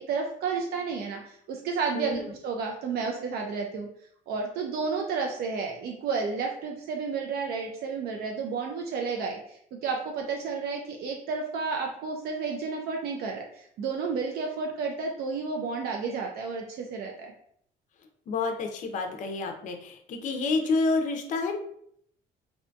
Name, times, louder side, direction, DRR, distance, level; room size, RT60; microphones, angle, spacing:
voice 1, 0.0-3.9 4.3-17.3, right 5 dB, 65° right, 1 dB, 0.4 m, -31 dB
voice 2, 1.9-2.2 18.3-21.6, left 3 dB, 50° left, 4 dB, 0.4 m, -29 dB
2.6 x 2.2 x 2.6 m, 0.68 s
cardioid pair, 110°, 17 cm